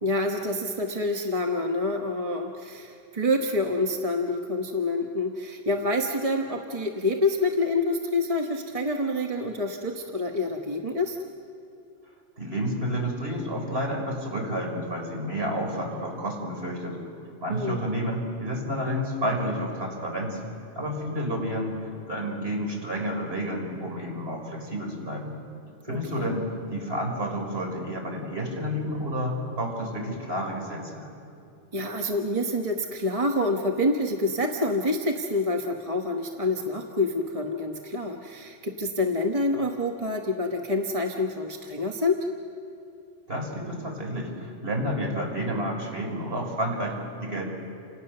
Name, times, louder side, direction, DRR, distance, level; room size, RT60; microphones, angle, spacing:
voice 1, 0.0-11.2 17.5-17.8 25.9-26.3 31.7-42.2, left 2 dB, 30° right, 2 dB, 1.3 m, -27 dB
voice 2, 12.4-17.0 17.4-20.4 20.7-25.3 25.8-31.1 43.3-47.4, equal, 55° right, 0 dB, 5.8 m, -30 dB
29.5 x 28.0 x 6.8 m, 2.6 s
omnidirectional pair, 1.2 m